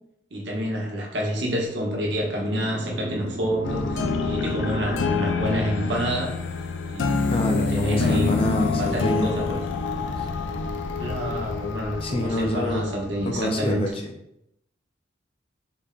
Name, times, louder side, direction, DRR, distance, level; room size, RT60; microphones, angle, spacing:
voice 1, 0.3-6.4 6.9-9.6 11.0-13.8, equal, 70° right, -1 dB, 1.0 m, -28 dB
sound 1, 1.8-6.7, right 1 dB, 25° right, 0.5 m, -37 dB
sound 2, 3.6-13.8, left 4 dB, 90° left, 0.4 m, -27 dB
voice 2, 7.3-9.3 10.2-10.3 12.0-12.9 13.2-14.1, left 1 dB, 30° left, 2 dB, 0.5 m, -26 dB
3.9 x 2.2 x 3.7 m, 0.79 s
head